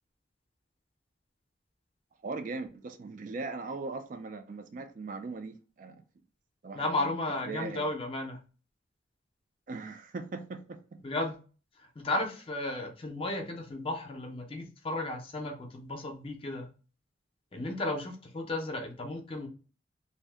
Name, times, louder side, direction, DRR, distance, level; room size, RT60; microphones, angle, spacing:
voice 1, 2.2-6.0 6.6-7.1 7.5-7.9 9.7-11.0, right 3 dB, 45° right, 0.3 m, -39 dB
voice 2, 6.7-8.4 11.0-11.4 12.0-16.7 17.5-19.5, left 2 dB, 30° left, 0.5 m, -34 dB
2.6 x 2.1 x 3.3 m
head